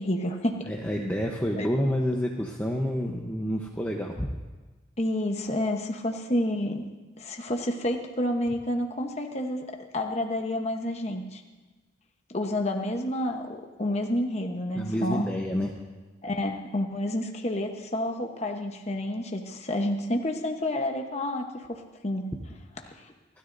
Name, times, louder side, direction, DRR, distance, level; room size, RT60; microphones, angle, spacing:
voice 1, 0.0-0.6 1.6-1.7 5.0-6.9 7.2-9.7 9.9-11.4 12.3-15.3 16.2-22.3 23.0-23.1, left 1 dB, 35° left, 3 dB, 1.0 m, -29 dB
voice 2, 0.7-4.3 14.7-15.7, equal, 10° left, -1 dB, 0.9 m, -28 dB
29.0 x 13.0 x 2.6 m, 1.3 s
head